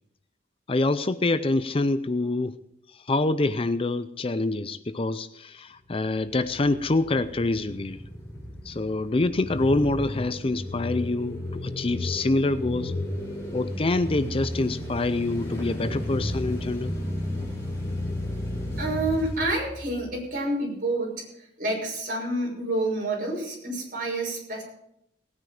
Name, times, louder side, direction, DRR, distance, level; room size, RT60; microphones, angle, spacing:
voice 1, 0.7-2.6 3.1-8.0 8.6-12.9 13.5-16.9, left 2 dB, 30° left, 13 dB, 0.5 m, -26 dB
sound 1, 5.9-20.2, left 1 dB, 15° left, 5.5 m, -33 dB
voice 2, 18.8-24.6, right 2 dB, 50° right, -1 dB, 6.2 m, -28 dB
18.5 x 9.6 x 5.1 m, 0.75 s
head